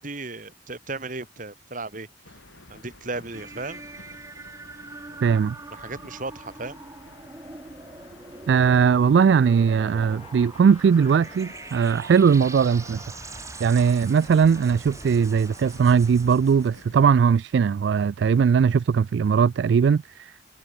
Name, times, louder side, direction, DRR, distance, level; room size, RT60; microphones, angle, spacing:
voice 1, 0.0-2.1 2.7-3.8 5.1-5.2 5.7-6.8, right 3 dB, 45° right, 2.5 m, -35 dB
sound 1, 2.2-17.2, left 2 dB, 90° left, 7.3 m, -51 dB
sound 2, 3.3-17.1, right 3 dB, 15° right, 0.7 m, -43 dB
voice 2, 5.2-5.6 8.5-13.0 13.6-20.3, right 6 dB, 65° right, 0.3 m, -19 dB
Trumpet, 9.2-16.4, left 5 dB, 35° left, 1.9 m, -50 dB
head